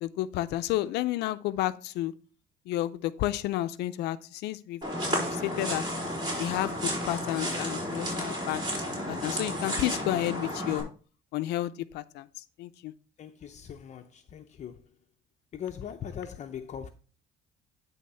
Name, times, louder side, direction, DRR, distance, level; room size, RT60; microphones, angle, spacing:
voice 1, 0.0-2.1 2.7-4.8 5.1-5.8 6.4-8.6 9.1-10.9 11.3-12.9, left 15 dB, 85° left, 0.5 m, -31 dB
sound 1, 4.8-10.8, equal, 25° right, 4.4 m, -32 dB
voice 2, 13.2-14.9 15.5-16.9, left 8 dB, 45° left, 0.6 m, -40 dB
10.5 x 3.5 x 5.5 m
cardioid pair, 110°, 17 cm